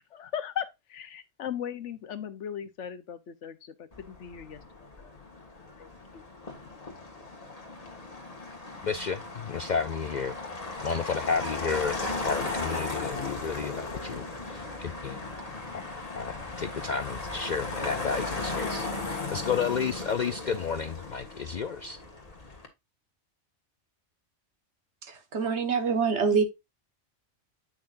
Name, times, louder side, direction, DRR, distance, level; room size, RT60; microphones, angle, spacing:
voice 1, 0.1-4.9 5.8-6.3, left 9 dB, 80° left, 1.2 m, -38 dB
Motor vehicle (road), 3.9-22.7, left 3 dB, 30° left, 1.7 m, -37 dB
voice 2, 8.8-10.3 10.8-15.2 15.7-15.8 16.1-22.0, left 6 dB, 55° left, 0.5 m, -32 dB
voice 3, 25.0-26.4, right 5 dB, 70° right, 1.6 m, -25 dB
8.7 x 5.9 x 2.5 m
omnidirectional pair, 1.2 m